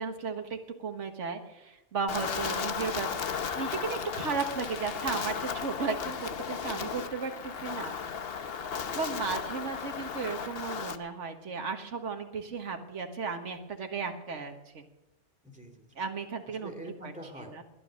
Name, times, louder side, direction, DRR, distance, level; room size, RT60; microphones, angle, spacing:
voice 1, 0.0-3.1 3.6-7.9 8.9-14.8 16.0-16.7 17.0-17.6, right 5 dB, 70° right, 5 dB, 1.8 m, -35 dB
Wind, 2.1-11.0, left 6 dB, 55° left, 1.0 m, -35 dB
voice 2, 15.4-16.0 16.5-17.6, right 1 dB, 5° right, 4 dB, 2.4 m, -46 dB
20.5 x 11.0 x 6.4 m, 0.96 s
omnidirectional pair, 1.3 m